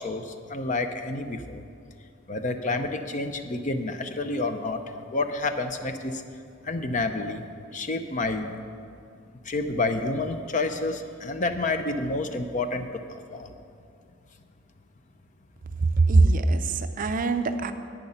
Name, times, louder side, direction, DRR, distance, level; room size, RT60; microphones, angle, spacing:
voice 1, 0.0-1.6 2.3-6.2 6.6-7.4 7.7-8.6 9.4-13.5, left 2 dB, 40° left, 8 dB, 0.6 m, -29 dB
voice 2, 15.8-17.7, right 3 dB, 45° right, 9 dB, 0.5 m, -22 dB
10.5 x 8.9 x 5.7 m, 2.3 s
head